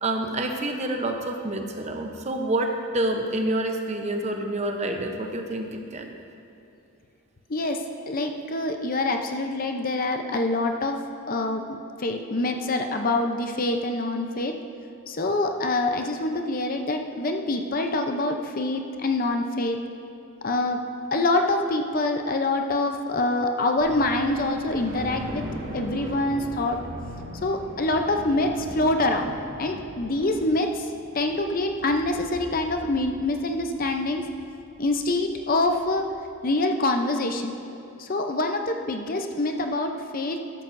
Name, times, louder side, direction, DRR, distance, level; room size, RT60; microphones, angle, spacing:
voice 1, 0.0-6.2, right 1 dB, 30° right, 3 dB, 0.8 m, -28 dB
voice 2, 7.5-11.0 11.3-14.5 15.1-19.8 20.4-20.8 21.1-25.4 25.7-26.8 27.4-29.3 29.6-34.3 34.8-36.1 36.4-37.5 38.0-40.4, left 2 dB, 40° left, 4 dB, 0.6 m, -25 dB
sound 1, 23.8-36.2, right 1 dB, 90° right, 2.1 m, -40 dB
13.5 x 12.5 x 2.6 m, 2.8 s
head